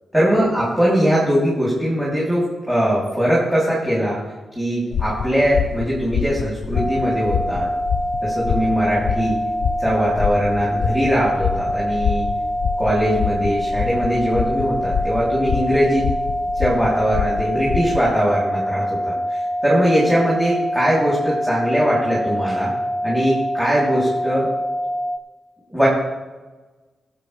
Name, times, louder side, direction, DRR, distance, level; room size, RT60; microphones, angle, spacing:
voice 1, 0.1-4.2 4.6-7.7 8.2-9.4 9.8-12.3 12.8-16.1 16.6-19.2 19.6-22.7 23.0-24.5 25.7-25.9, equal, 5° right, -7 dB, 3.5 m, -20 dB
sound 1, 4.9-18.1, left 7 dB, 65° left, 0.6 m, -27 dB
sound 2, 6.7-25.2, equal, 15° left, 0.5 m, -25 dB
21.5 x 8.2 x 3.5 m, 1.2 s
wide cardioid pair, 165°, 0 cm